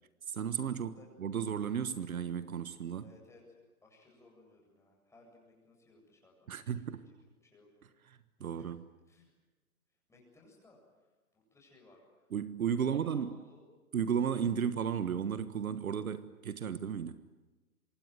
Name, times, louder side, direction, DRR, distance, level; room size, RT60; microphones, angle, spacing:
voice 1, 0.3-3.1 6.5-7.0 8.1-8.9 12.3-13.4 13.9-17.2, right 7 dB, 65° right, 1.5 m, -34 dB
voice 2, 3.0-3.6 3.8-6.5 6.8-7.1 7.4-7.7 8.4-8.7 9.1-9.3 10.1-11.1 11.3-12.3 12.8-13.6, left 2 dB, 5° left, 8.0 m, -61 dB
26.0 x 23.0 x 9.4 m
hypercardioid pair, 135°, 45 cm